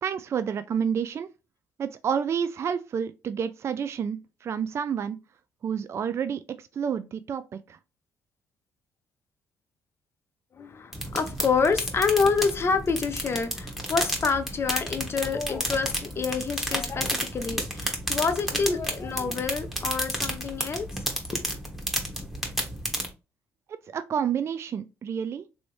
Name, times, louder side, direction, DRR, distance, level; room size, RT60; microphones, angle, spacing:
voice 1, 0.0-1.3 1.8-5.2 5.6-7.8 23.7-25.5, right 7 dB, 45° right, 0.3 m, -29 dB
voice 2, 10.5-21.1 21.3-21.5, left 5 dB, 40° left, 0.5 m, -27 dB
sound 1, 10.9-23.1, equal, 5° right, 1.1 m, -32 dB
3.1 x 2.7 x 3.1 m
cardioid pair, 75°, 6 cm